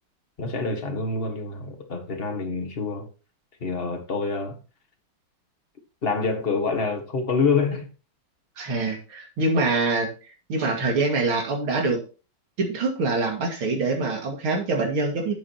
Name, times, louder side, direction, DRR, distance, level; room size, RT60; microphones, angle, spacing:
voice 1, 0.4-3.1 3.6-4.6 6.0-7.9, left 4 dB, 30° left, 1.7 m, -26 dB
voice 2, 8.6-12.0 12.6-15.3, right 3 dB, 75° right, 3.1 m, -25 dB
12.0 x 7.6 x 3.0 m
omnidirectional pair, 2.3 m